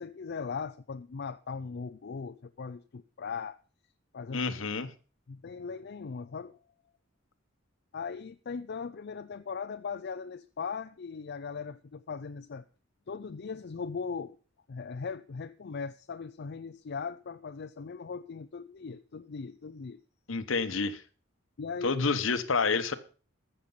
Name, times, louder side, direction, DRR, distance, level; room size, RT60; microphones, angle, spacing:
voice 1, 0.0-3.6 4.1-4.5 5.3-6.6 7.9-12.6 13.1-14.4 14.7-20.0 21.6-21.9, left 5 dB, 60° left, 0.5 m, -39 dB
voice 2, 4.3-4.9 20.3-21.0 21.8-22.9, left 4 dB, 80° left, 1.1 m, -28 dB
14.5 x 6.8 x 5.6 m
head